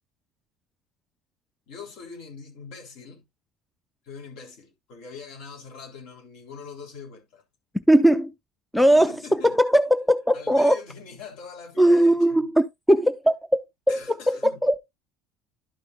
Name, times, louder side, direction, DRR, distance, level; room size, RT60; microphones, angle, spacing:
voice 1, 1.7-3.2 4.0-7.4 8.8-9.6 10.3-12.4 13.9-14.6, left 5 dB, 60° left, 3.5 m, -42 dB
voice 2, 7.9-8.3 8.7-10.8 11.8-13.6 13.9-14.0 14.3-14.4 14.6-14.8, right 1 dB, ahead, 0.4 m, -19 dB
12.0 x 5.5 x 2.3 m
cardioid pair, 155°, 0 cm